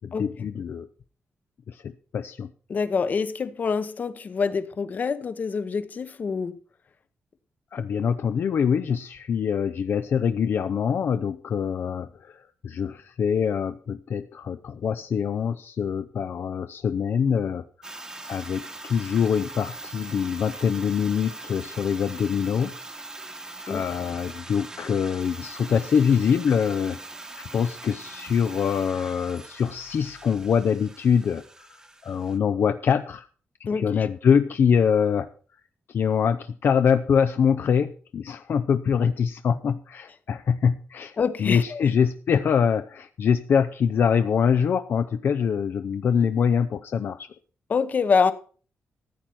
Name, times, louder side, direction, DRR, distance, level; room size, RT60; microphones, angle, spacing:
voice 1, 0.0-0.9 1.7-2.5 7.7-17.9 18.3-22.7 23.7-27.0 27.4-33.3 33.6-35.3 35.9-47.3, left 7 dB, 55° left, 0.7 m, -24 dB
voice 2, 2.7-6.6 23.7-23.8 33.7-33.9 41.2-41.8 47.7-48.3, left 5 dB, 40° left, 1.0 m, -25 dB
sound 1, 17.8-32.4, right 2 dB, 15° right, 1.1 m, -41 dB
14.5 x 9.1 x 6.0 m
wide cardioid pair, 170°, 4 cm